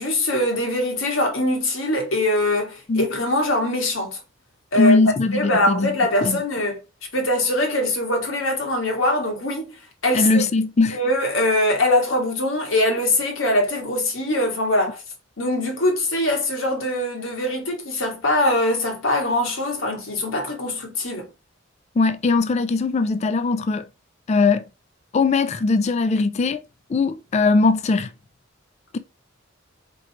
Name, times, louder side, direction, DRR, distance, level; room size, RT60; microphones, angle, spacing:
voice 1, 0.0-4.2 4.7-5.0 5.3-6.8 7.1-9.7 10.0-10.4 10.9-15.0 15.4-21.3, left 1 dB, 80° left, 1.8 m, -22 dB
voice 2, 4.8-6.4 10.1-11.0 22.0-23.8 24.3-24.6 25.1-26.6 26.9-28.1 28.9-29.0, left 3 dB, 35° left, 0.3 m, -20 dB
4.5 x 3.8 x 2.9 m
head